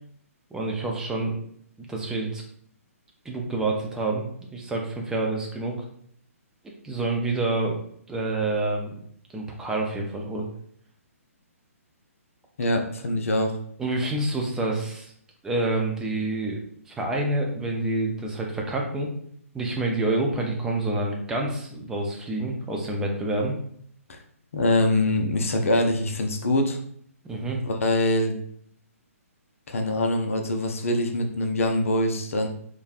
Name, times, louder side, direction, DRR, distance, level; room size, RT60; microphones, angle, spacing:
voice 1, 0.5-1.4 1.9-2.4 3.3-5.8 6.8-7.8 8.1-8.9 9.3-10.5 13.8-15.1 15.4-16.6 16.9-19.1 19.5-23.5 27.2-27.6, right 2 dB, 5° right, 0 dB, 0.4 m, -27 dB
voice 2, 12.6-13.6 24.1-24.2 24.5-26.8 27.6-28.3 29.7-32.5, left 1 dB, 65° left, 3 dB, 0.5 m, -24 dB
3.1 x 2.2 x 2.4 m, 0.63 s
figure-of-eight pair, 130°, 8 cm